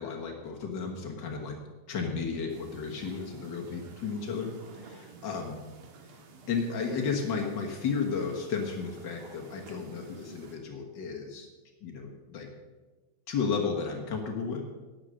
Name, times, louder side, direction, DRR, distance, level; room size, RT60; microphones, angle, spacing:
voice 1, 0.0-1.6 1.9-5.6 6.5-11.5 11.8-12.5 13.3-14.6, left 5 dB, 80° left, 1 dB, 1.0 m, -33 dB
sound 1, 2.5-10.6, right 4 dB, 70° right, 2.9 m, -52 dB
12.0 x 9.1 x 6.2 m, 1.3 s
omnidirectional pair, 4.0 m